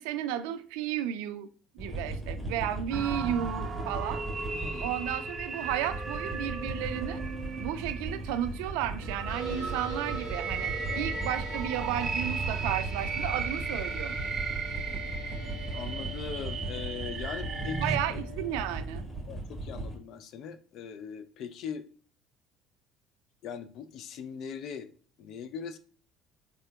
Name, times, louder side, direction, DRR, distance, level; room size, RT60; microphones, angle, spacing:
voice 1, 0.0-1.5 1.7-4.2 4.8-7.2 7.6-14.3 17.8-19.1, right 11 dB, 80° right, 0.3 m, -33 dB
sound 1, 1.8-19.9, right 1 dB, 15° left, 1.5 m, -38 dB
sound 2, 2.9-18.0, right 5 dB, 30° right, 0.6 m, -36 dB
voice 2, 4.5-4.9 10.9-11.0 15.7-18.2 19.2-21.9 23.4-24.9 25.2-25.8, left 7 dB, 60° left, 0.4 m, -40 dB
sound 3, 9.3-18.6, left 4 dB, 85° left, 1.1 m, -47 dB
3.7 x 3.4 x 2.2 m
supercardioid pair, 80°, 0 cm